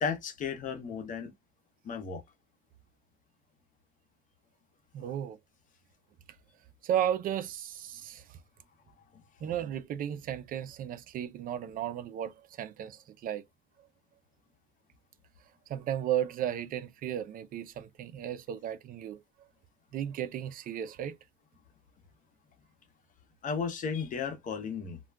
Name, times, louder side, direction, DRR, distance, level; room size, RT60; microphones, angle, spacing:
voice 1, 0.0-1.3 1.8-2.2 5.0-5.2 23.4-25.0, left 6 dB, 50° left, 0.8 m, -34 dB
voice 2, 4.9-5.4 6.8-8.2 9.4-13.4 15.7-19.2 19.9-21.2, right 10 dB, 55° right, 0.4 m, -34 dB
2.3 x 2.2 x 3.3 m
cardioid pair, 110°, 17 cm